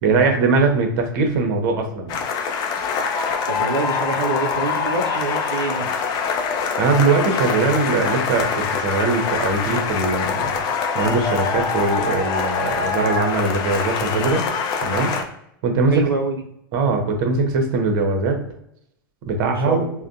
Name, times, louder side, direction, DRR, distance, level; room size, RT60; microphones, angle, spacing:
voice 1, 0.0-2.2 6.8-10.5 10.9-14.4 14.8-15.1 15.6-16.1 16.7-18.4 19.3-19.9, right 3 dB, 45° right, 4 dB, 0.7 m, -21 dB
sound 1, 2.1-15.2, left 5 dB, 35° left, 0.5 m, -24 dB
voice 2, 3.5-5.9 15.9-16.4 19.5-19.8, right 3 dB, 80° right, 2 dB, 0.4 m, -25 dB
3.3 x 2.1 x 2.6 m, 0.76 s
figure-of-eight pair, 95°, 12 cm